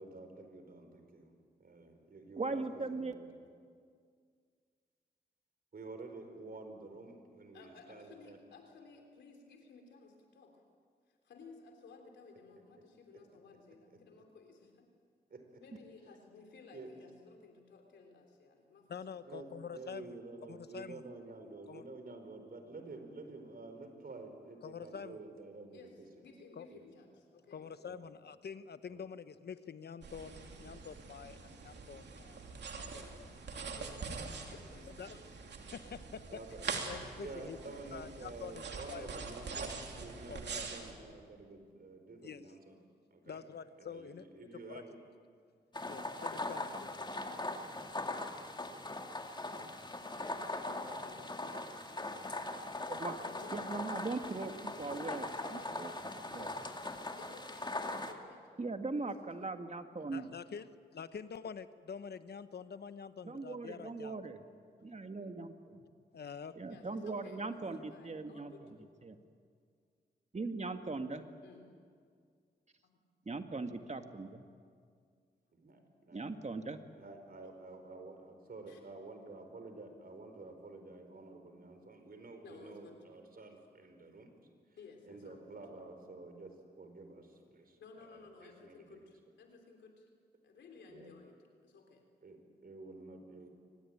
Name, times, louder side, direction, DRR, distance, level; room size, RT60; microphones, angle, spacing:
voice 1, 0.0-1.3 1.6-3.3 5.7-8.4 13.1-13.2 13.9-14.0 15.3-15.6 16.7-16.9 19.3-26.1 26.7-26.8 27.8-28.1 28.9-29.0 36.3-36.7 37.2-42.8 43.1-43.4 43.8-44.9 75.5-76.4 77.0-84.3 85.0-89.0 90.9-91.1 92.2-93.5, right 3 dB, 60° right, 6 dB, 4.6 m, -50 dB
voice 2, 2.4-3.1 52.9-53.1 53.5-56.5 58.6-60.3 63.2-64.4 64.8-65.8 66.6-68.5 69.0-69.2 70.3-71.2 73.3-74.4 76.1-76.8, right 3 dB, 40° right, 7 dB, 2.0 m, -40 dB
voice 3, 7.5-10.5 11.1-14.9 15.6-19.2 25.7-25.9 26.2-27.7 32.7-33.0 33.7-34.1 34.4-35.2 35.6-35.7 36.5-36.6 50.2-51.7 52.0-52.5 53.1-55.8 57.2-58.4 58.9-59.5 60.0-60.1 66.6-67.4 67.9-68.7 69.0-69.1 71.4-71.8 72.8-73.0 77.4-77.5 78.7-78.8 82.4-83.0 84.8-85.4 87.8-90.1 90.4-91.3 91.6-92.0, left 4 dB, 90° left, 3 dB, 3.4 m, -57 dB
voice 4, 18.9-20.1 20.5-21.0 21.7-21.9 24.6-25.2 26.6-26.7 27.5-33.4 35.0-35.1 35.7-36.4 36.9-37.6 37.9-39.7 40.3-40.6 42.2-42.5 43.3-44.3 44.7-44.8 45.9-47.1 60.1-64.2 66.1-66.6 67.6-67.8, left 6 dB, 65° left, 12 dB, 1.0 m, -47 dB
sound 1, 30.0-40.9, right 4 dB, 75° right, 2.8 m, -44 dB
sound 2, 45.7-58.1, left 2 dB, 25° left, 2.4 m, -40 dB
23.5 x 19.0 x 8.9 m, 2.1 s
cardioid pair, 50°, 18 cm